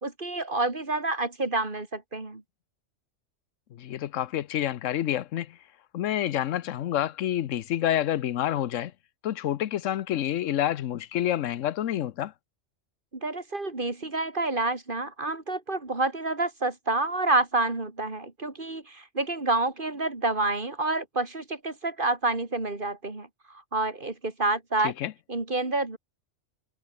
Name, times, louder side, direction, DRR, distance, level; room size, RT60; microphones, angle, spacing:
voice 1, 0.0-2.4 13.1-24.9 25.3-26.0, right 2 dB, 45° right, 3.0 m, -28 dB
voice 2, 3.7-5.6 5.9-8.9 9.2-12.3 24.8-25.1, left 11 dB, 90° left, 1.1 m, -28 dB
omnidirectional pair, 1.3 m